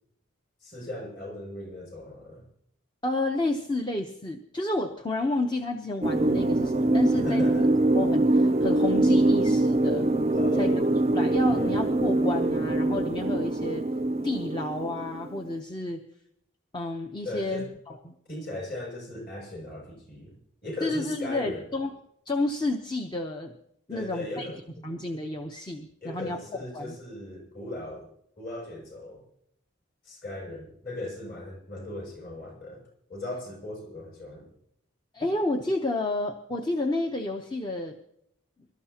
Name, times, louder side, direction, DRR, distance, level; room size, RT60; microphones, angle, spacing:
voice 1, 0.6-2.4 7.1-7.7 10.3-10.9 11.4-11.8 17.2-17.7 18.3-21.7 23.9-24.8 26.0-28.1 28.4-29.2 30.0-32.8 33.1-34.5, left 1 dB, 45° left, 0 dB, 6.8 m, -38 dB
voice 2, 3.0-7.5 7.9-10.1 10.6-10.7 11.1-13.9 14.2-16.0 16.7-18.1 20.8-21.9 22.3-23.5 23.9-24.5 24.8-26.4 26.7-27.0 35.1-38.0, left 2 dB, 20° left, 3 dB, 0.8 m, -30 dB
sound 1, 6.0-15.5, right 1 dB, 30° right, 0.5 m, -23 dB
24.5 x 13.0 x 2.9 m, 0.73 s
head